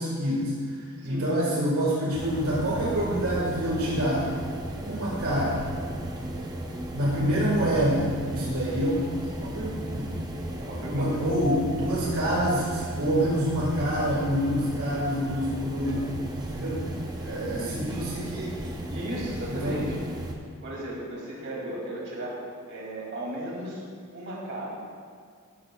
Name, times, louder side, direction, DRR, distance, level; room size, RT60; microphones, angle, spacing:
voice 1, 0.0-4.3 4.8-5.7 6.9-10.1 10.9-16.0 16.3-16.9 17.2-18.6 19.5-19.9, equal, 75° right, -5 dB, 1.7 m, -27 dB
voice 2, 1.0-1.3 10.6-11.2 15.8-16.1 17.2-18.0 18.9-20.0 20.6-22.4 22.7-23.8 24.1-24.7, right 1 dB, 50° right, -4 dB, 2.7 m, -36 dB
sound 1, 2.1-20.3, right 1 dB, 15° right, 0.7 m, -35 dB
12.5 x 11.5 x 2.4 m, 2.1 s
head